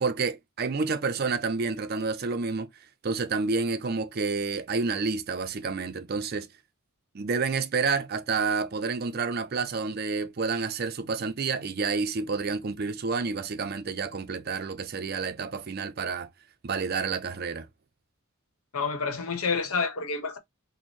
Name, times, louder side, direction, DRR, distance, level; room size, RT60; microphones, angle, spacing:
voice 1, 0.0-2.7 3.0-6.5 7.1-16.3 16.6-17.7, right 4 dB, 45° right, 0.4 m, -29 dB
voice 2, 18.7-20.4, left 4 dB, 85° left, 0.9 m, -28 dB
4.2 x 2.0 x 3.1 m
head